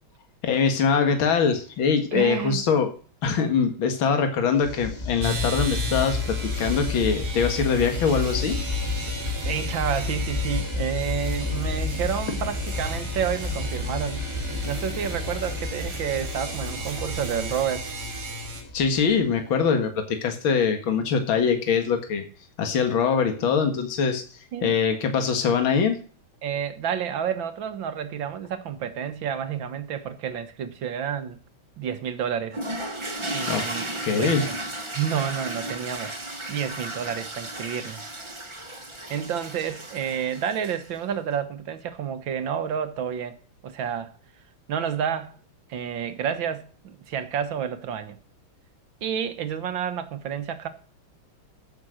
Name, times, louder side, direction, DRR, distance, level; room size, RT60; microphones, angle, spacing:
voice 1, 0.4-2.9 3.2-8.6 18.7-22.2 22.6-26.0 33.5-33.6 34.0-34.5, left 6 dB, 70° left, 2.5 m, -23 dB
voice 2, 2.1-2.6 9.4-14.3 14.6-17.9 24.5-24.8 26.4-31.4 31.8-32.6 33.3-33.9 34.2-34.5 34.9-36.2 36.5-38.3 39.1-43.4 43.6-44.1 44.7-45.3 45.7-48.2 49.0-50.7, right 8 dB, 65° right, 2.0 m, -30 dB
sound 1, 4.6-19.4, left 3 dB, 30° left, 2.3 m, -31 dB
sound 2, 5.2-18.6, right 2 dB, 85° right, 3.6 m, -36 dB
sound 3, 32.5-41.0, right 1 dB, 15° right, 1.3 m, -34 dB
15.0 x 6.3 x 6.4 m
omnidirectional pair, 2.3 m